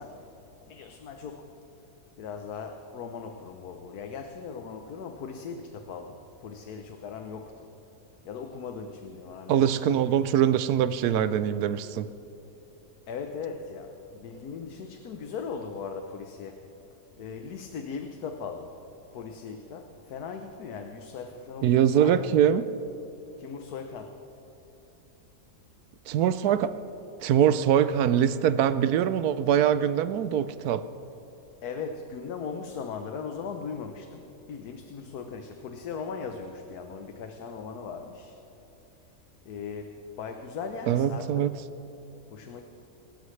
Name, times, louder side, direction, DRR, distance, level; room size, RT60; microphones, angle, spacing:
voice 1, 0.0-1.5 2.2-7.7 8.2-10.0 13.1-16.7 17.2-18.8 19.1-22.1 23.4-24.2 31.6-38.4 39.4-41.4 42.3-42.6, left 5 dB, 80° left, 5 dB, 1.4 m, -39 dB
voice 2, 9.5-12.1 21.6-22.7 26.1-26.7 27.2-30.8 40.9-41.6, right 9 dB, 85° right, 13 dB, 1.2 m, -23 dB
27.5 x 13.5 x 3.3 m, 2.9 s
omnidirectional pair, 1.6 m